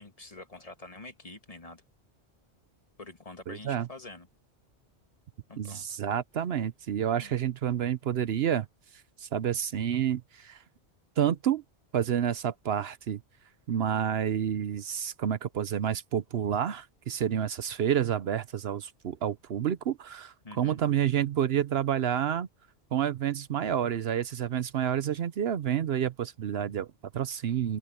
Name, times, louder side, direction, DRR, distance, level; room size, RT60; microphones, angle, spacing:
voice 1, 0.0-1.8 3.0-4.3 5.5-6.0 7.2-7.4 20.4-20.8, left 2 dB, 35° left, 1.7 m, -46 dB
voice 2, 3.5-3.9 5.6-8.7 9.2-10.6 11.2-11.6 11.9-13.2 13.7-22.5 22.9-27.8, right 9 dB, 65° right, 0.9 m, -29 dB
open air
omnidirectional pair, 1.1 m